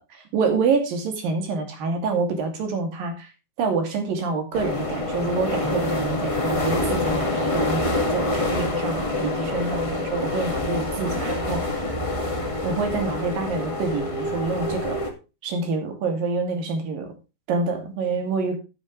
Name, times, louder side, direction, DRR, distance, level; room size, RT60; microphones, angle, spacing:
voice 1, 0.1-3.3 3.6-11.8 12.6-15.0 15.4-17.1 17.5-18.6, right 4 dB, 85° right, 5 dB, 4.3 m, -27 dB
sound 1, 4.5-15.1, left 2 dB, 15° left, 1.4 m, -26 dB
13.0 x 9.0 x 3.2 m, 0.29 s
omnidirectional pair, 3.9 m